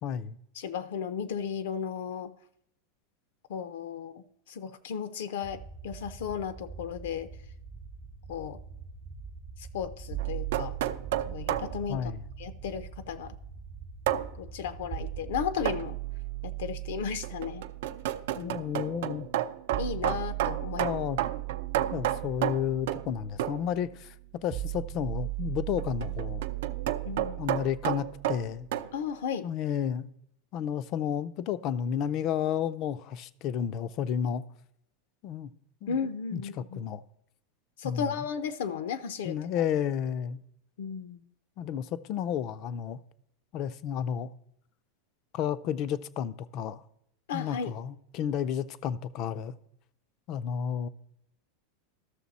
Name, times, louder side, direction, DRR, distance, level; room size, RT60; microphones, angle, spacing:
voice 1, 0.0-0.4 11.9-12.2 18.4-19.3 20.7-21.2 21.9-24.1 24.4-26.4 27.4-28.7 29.4-30.1 30.5-34.4 35.2-35.5 35.8-36.0 36.3-36.4 36.7-37.0 37.8-38.3 39.2-40.4 41.6-43.0 43.5-44.3 45.3-46.8 47.3-49.5 50.3-50.9, left 9 dB, 35° left, 0.4 m, -32 dB
voice 2, 0.6-2.3 3.5-7.3 8.3-8.6 9.7-10.7 11.3-13.4 14.4-16.0 16.4-17.6 18.3-18.6 19.8-21.0 27.0-27.4 28.9-29.5 35.9-36.8 37.8-39.4 40.8-41.2 47.3-47.7, left 7 dB, 75° left, 0.7 m, -35 dB
sound 1, 5.4-15.4, right 4 dB, 25° right, 0.6 m, -45 dB
sound 2, 10.1-14.1 14.9-28.9, right 19 dB, 45° right, 1.0 m, -39 dB
sound 3, 10.2-11.7 14.1-14.3 15.7-15.9 17.2-23.1 23.4-23.7 25.8-28.9, right 12 dB, 70° right, 0.5 m, -31 dB
12.5 x 6.7 x 4.1 m
supercardioid pair, 165°, 0 cm